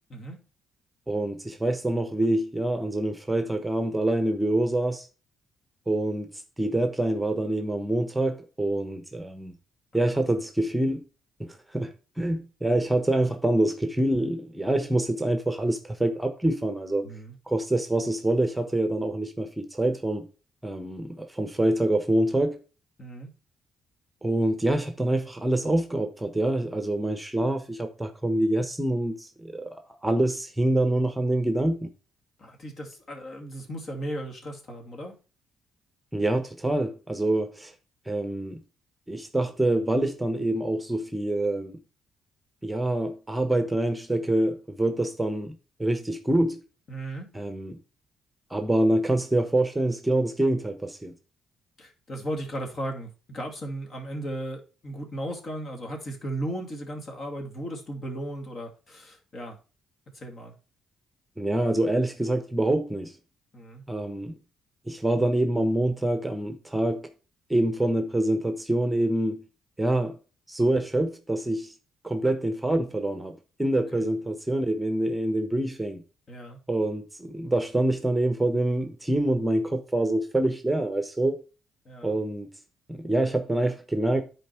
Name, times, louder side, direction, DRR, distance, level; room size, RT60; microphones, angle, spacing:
voice 1, 0.1-0.4 17.0-17.4 23.0-23.3 32.4-35.2 46.9-47.3 51.8-59.6 60.1-60.5 63.5-63.8 73.9-74.1 76.3-76.6 81.8-82.1, right 1 dB, 45° left, 2.5 m, -36 dB
voice 2, 1.1-5.1 5.9-9.5 9.9-11.0 11.4-17.1 17.5-20.3 20.6-22.6 24.2-31.9 36.1-37.7 38.1-38.6 39.1-41.8 42.6-45.5 45.8-46.6 47.3-47.8 48.5-51.1 61.4-63.1 63.9-64.4 64.9-67.1 67.5-69.4 69.8-70.2 70.5-71.7 72.0-76.0 76.7-81.4 82.0-82.5 82.9-84.2, right 1 dB, 10° right, 1.1 m, -26 dB
10.5 x 4.4 x 4.5 m
cardioid pair, 90°, 0 cm